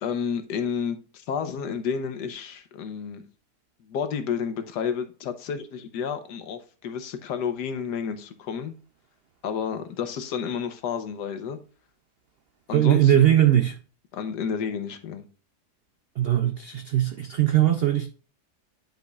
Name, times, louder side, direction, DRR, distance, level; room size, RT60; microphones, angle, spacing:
voice 1, 0.0-3.2 3.9-8.7 9.4-11.6 12.7-13.3 14.1-15.2, left 7 dB, 90° left, 1.5 m, -31 dB
voice 2, 12.7-13.8 16.2-18.1, right 12 dB, 90° right, 0.5 m, -20 dB
10.5 x 5.2 x 2.4 m
omnidirectional pair, 1.7 m